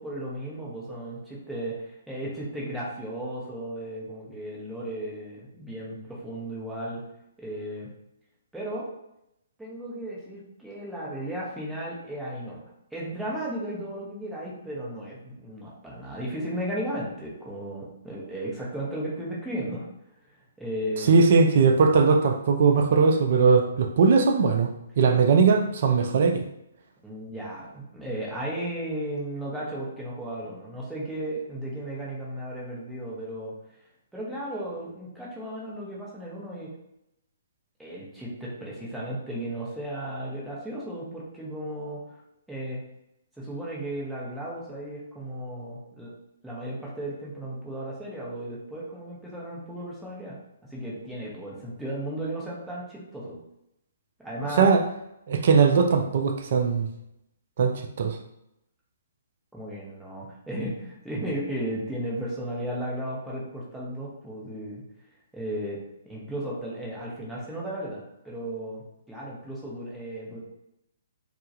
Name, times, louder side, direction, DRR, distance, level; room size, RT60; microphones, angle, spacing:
voice 1, 0.0-7.0 7.4-7.9 8.5-8.9 9.6-12.6 12.9-19.9 20.6-21.2 27.0-33.5 34.1-36.7 37.8-42.0 42.5-42.8 43.4-46.1 46.4-53.4 54.2-54.7 59.5-64.8 65.3-70.4, right 1 dB, 5° right, -6 dB, 0.7 m, -35 dB
voice 2, 21.1-26.4 54.6-54.8 55.3-56.9 57.6-58.2, right 5 dB, 55° right, 4 dB, 0.3 m, -20 dB
2.2 x 2.0 x 2.7 m, 0.83 s
figure-of-eight pair, 130°, 0 cm